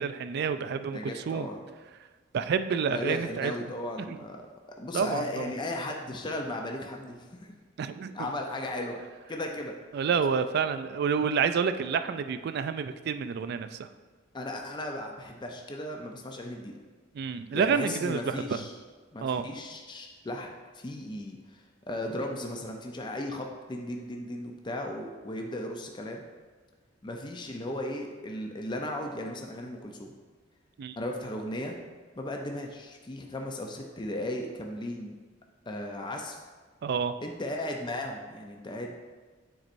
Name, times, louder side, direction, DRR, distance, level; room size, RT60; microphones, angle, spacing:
voice 1, 0.0-1.5 2.3-3.5 4.0-4.2 4.9-5.5 7.8-8.3 9.9-13.9 17.1-18.6 19.2-19.5 30.8-31.0 36.8-37.1, right 6 dB, 55° right, 11 dB, 0.3 m, -29 dB
voice 2, 0.8-1.6 2.9-4.5 4.8-7.5 8.1-9.0 9.3-9.7 14.3-16.7 17.5-18.7 19.1-21.6 21.9-26.2 27.0-30.1 31.0-31.8 32.2-35.1 35.7-36.4 37.2-38.9, left 1 dB, 25° left, 2 dB, 0.5 m, -36 dB
9.1 x 4.2 x 2.6 m, 1.4 s
head